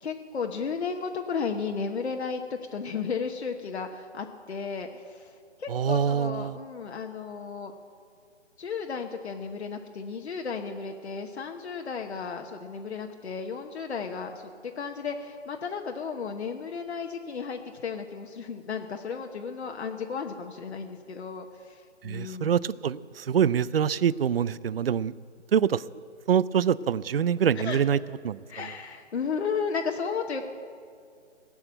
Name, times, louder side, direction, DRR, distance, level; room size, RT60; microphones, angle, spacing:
voice 1, 0.0-7.7 8.6-14.4 14.8-22.5 27.6-27.8 28.5-30.4, left 5 dB, 65° left, 3 dB, 1.1 m, -34 dB
voice 2, 5.7-6.6 22.0-25.1 25.5-25.8 26.3-28.0 28.2-28.4, right 8 dB, 55° right, 21 dB, 0.4 m, -25 dB
18.0 x 7.1 x 8.8 m, 2.3 s
hypercardioid pair, 155°, 35 cm